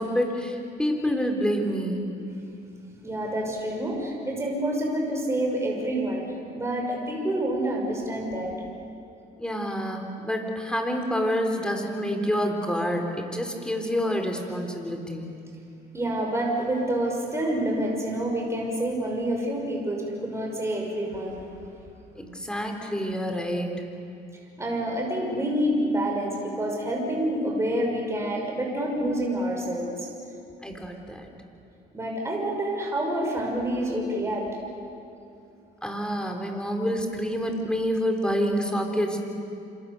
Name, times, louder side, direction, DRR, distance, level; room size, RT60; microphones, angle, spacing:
voice 1, 0.0-2.1 9.4-15.3 22.2-23.8 30.6-31.3 35.8-39.2, equal, 5° left, 3 dB, 3.9 m, -28 dB
voice 2, 3.0-6.2 6.5-8.5 15.9-21.4 24.6-30.1 31.9-34.5, right 1 dB, 15° right, -1 dB, 6.1 m, -27 dB
27.5 x 27.0 x 6.9 m, 2.6 s
cardioid pair, 110°, 17 cm